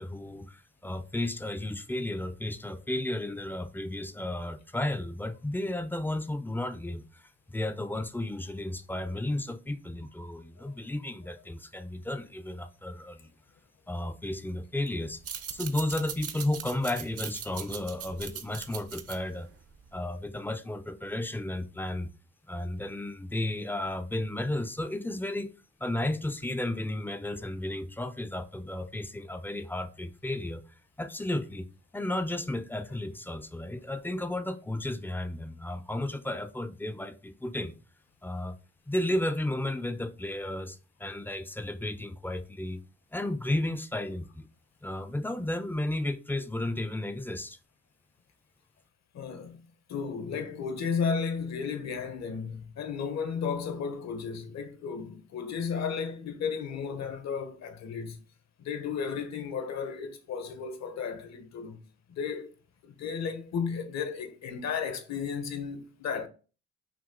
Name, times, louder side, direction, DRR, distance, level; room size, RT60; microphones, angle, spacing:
voice 1, 0.0-13.3 13.9-15.2 15.5-19.5 19.9-22.1 22.5-25.5 25.8-30.6 31.0-31.7 31.9-37.7 38.2-38.6 38.9-42.8 43.1-44.5 44.8-47.6, left 1 dB, 5° left, 0.4 m, -33 dB
sound 1, 15.1-20.3, right 8 dB, 50° right, 0.7 m, -40 dB
voice 2, 49.1-49.6 49.9-58.2 58.6-61.8 62.1-62.5 62.8-66.3, left 6 dB, 65° left, 1.1 m, -34 dB
5.9 x 2.4 x 3.7 m
cardioid pair, 90°, 30 cm